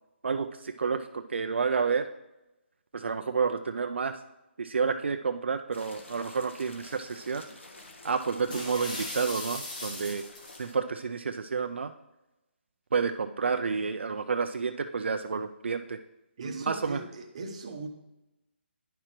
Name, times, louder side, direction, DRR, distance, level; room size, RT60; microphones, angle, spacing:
voice 1, 0.2-2.1 2.9-4.2 4.6-7.4 8.0-10.2 10.6-11.9 12.9-16.0 16.4-17.0, right 5 dB, 70° right, 7 dB, 0.4 m, -30 dB
sound 1, 5.7-10.7, left 2 dB, 75° left, 1.4 m, -49 dB
sound 2, 8.5-10.6, left 2 dB, 40° left, 1.7 m, -38 dB
voice 2, 16.4-17.9, right 3 dB, 30° right, 4 dB, 0.7 m, -39 dB
9.9 x 5.9 x 3.2 m, 0.97 s
hypercardioid pair, 175°, 7 cm